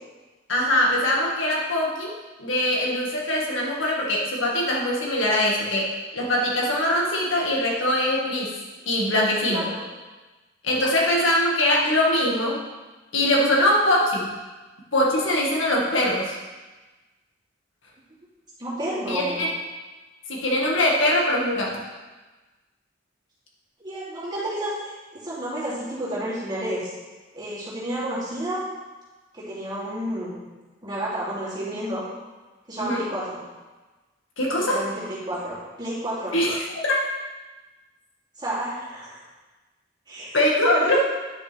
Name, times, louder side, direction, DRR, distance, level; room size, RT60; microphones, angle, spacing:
voice 1, 0.5-2.1 2.4-8.5 8.9-9.7 10.6-12.6 13.1-14.3 14.9-16.4 19.1-19.5 20.3-21.8 32.8-33.0 34.4-34.9 36.3-37.0 40.3-41.0, left 1 dB, 75° left, -2 dB, 1.9 m, -22 dB
voice 2, 9.5-9.8 10.8-10.9 13.5-13.7 18.6-19.4 23.8-26.9 27.3-28.6 29.3-30.3 30.8-32.0 32.7-33.4 34.5-36.4 38.4-39.2 40.1-40.4 40.7-41.0, right 1 dB, 25° right, -9 dB, 3.0 m, -31 dB
10.0 x 6.9 x 3.5 m, 1.2 s
head